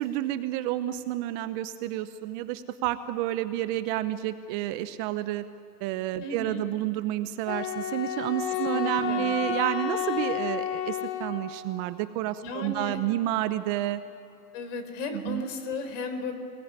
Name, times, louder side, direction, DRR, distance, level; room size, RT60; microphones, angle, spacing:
voice 1, 0.0-5.4 5.8-14.0 15.1-15.4, right 14 dB, 30° right, 12 dB, 0.8 m, -30 dB
voice 2, 6.2-6.7 8.7-9.4 12.4-13.0 14.5-16.3, left 3 dB, 50° left, 8 dB, 4.5 m, -35 dB
Wind instrument woodwind instrument, 7.5-11.7, left 9 dB, 25° left, 1.4 m, -31 dB
28.5 x 20.0 x 9.7 m, 2.7 s
hypercardioid pair, 130°, 48 cm